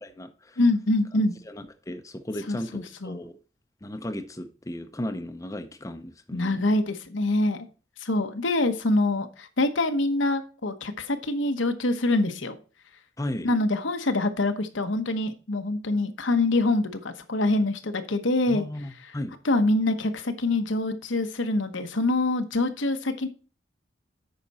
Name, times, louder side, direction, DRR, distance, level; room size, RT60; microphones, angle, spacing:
voice 1, 0.0-0.6 1.5-3.4 3.8-6.6 13.2-13.5 18.5-19.4, left 1 dB, 15° left, 0.7 m, -35 dB
voice 2, 0.6-1.3 2.5-3.2 6.3-7.7 8.0-12.6 13.4-18.6 19.4-23.3, left 2 dB, 75° left, 1.1 m, -25 dB
8.9 x 5.8 x 4.2 m
head